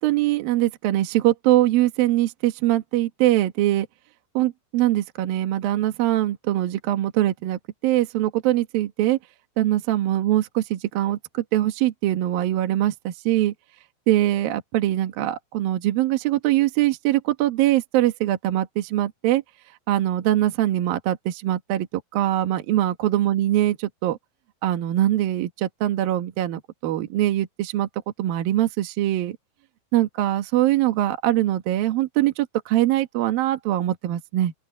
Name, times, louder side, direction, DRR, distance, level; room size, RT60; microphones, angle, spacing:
voice 1, 0.0-3.9 4.3-9.2 9.6-13.5 14.1-19.4 19.9-21.9 22.1-24.2 24.6-27.9 28.2-29.4 29.9-34.5, right 14 dB, 65° right, 2.5 m, -22 dB
open air
omnidirectional pair, 5.9 m